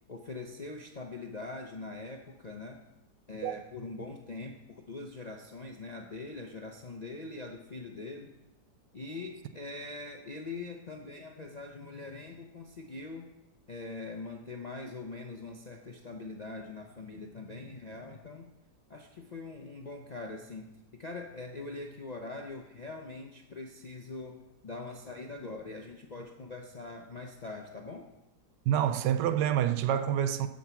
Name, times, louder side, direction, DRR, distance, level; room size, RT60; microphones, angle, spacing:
voice 1, 0.1-2.8 3.3-8.3 8.9-13.3 13.7-18.5 18.9-24.4 24.6-28.1, left 3 dB, 55° left, 0.4 m, -42 dB
voice 2, 28.7-30.5, right 10 dB, 90° right, 1.3 m, -27 dB
10.5 x 5.1 x 7.0 m
omnidirectional pair, 1.8 m